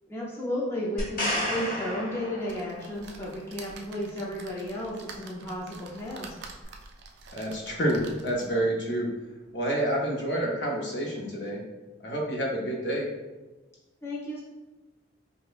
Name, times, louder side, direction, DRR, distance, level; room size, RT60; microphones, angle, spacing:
voice 1, 0.0-6.4 14.0-14.4, left 1 dB, 15° left, -5 dB, 0.5 m, -33 dB
sound 1, 1.0-3.0 6.6-6.7, left 1 dB, 45° left, 1.0 m, -31 dB
sound 2, 2.5-8.7 9.2-9.3 9.6-9.7, right 4 dB, 65° right, 0.4 m, -47 dB
voice 2, 7.3-9.1 9.5-11.6 12.0-13.1, right 1 dB, 70° left, -1 dB, 0.7 m, -28 dB
4.9 x 2.2 x 2.4 m, 1.1 s
head